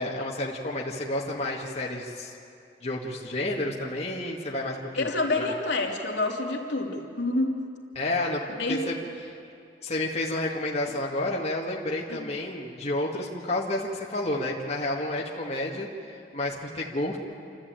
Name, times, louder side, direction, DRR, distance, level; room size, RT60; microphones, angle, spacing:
voice 1, 0.0-2.3 2.8-5.1 5.4-5.5 8.0-9.3 9.8-17.2, left 1 dB, 35° left, -3 dB, 1.9 m, -30 dB
voice 2, 5.0-7.5 8.6-8.8 12.1-12.3, left 2 dB, 75° left, -1 dB, 2.9 m, -28 dB
28.0 x 13.5 x 9.0 m, 2.6 s
head